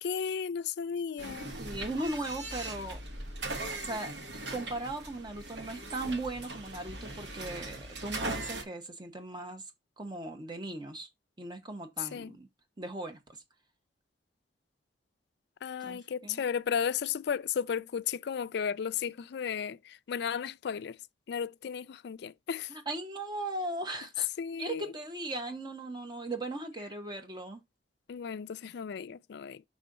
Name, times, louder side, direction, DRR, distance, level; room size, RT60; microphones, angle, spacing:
voice 1, 0.0-1.6 12.0-12.3 15.6-21.0 21.3-22.7 24.4-24.9 28.1-29.6, left 7 dB, 65° left, 0.4 m, -34 dB
sound 1, 1.2-8.6, right 2 dB, 70° right, 1.9 m, -40 dB
voice 2, 1.6-3.0 3.8-4.1 4.5-9.6 10.0-11.1 11.4-12.5 12.8-13.2 15.8-16.4 22.7-24.3 24.6-27.6, right 2 dB, 25° right, 1.2 m, -38 dB
5.4 x 3.8 x 5.3 m
head